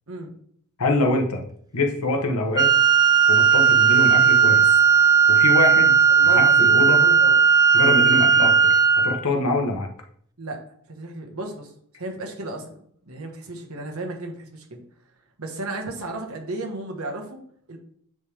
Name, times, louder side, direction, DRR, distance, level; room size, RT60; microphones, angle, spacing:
voice 1, 0.8-1.4 1.7-2.7 3.3-4.7 5.3-5.9 6.3-7.0 7.7-8.7 9.0-9.9, left 2 dB, 80° left, 3 dB, 1.1 m, -24 dB
Wind instrument woodwind instrument, 2.6-9.2, right 6 dB, 15° right, 0.3 m, -16 dB
voice 2, 6.1-7.4 7.8-8.0 10.4-10.6 10.9-12.7 13.0-14.8 15.4-17.4 17.7-17.8, right 2 dB, 70° right, 2 dB, 1.4 m, -34 dB
8.9 x 3.4 x 3.5 m, 0.62 s
head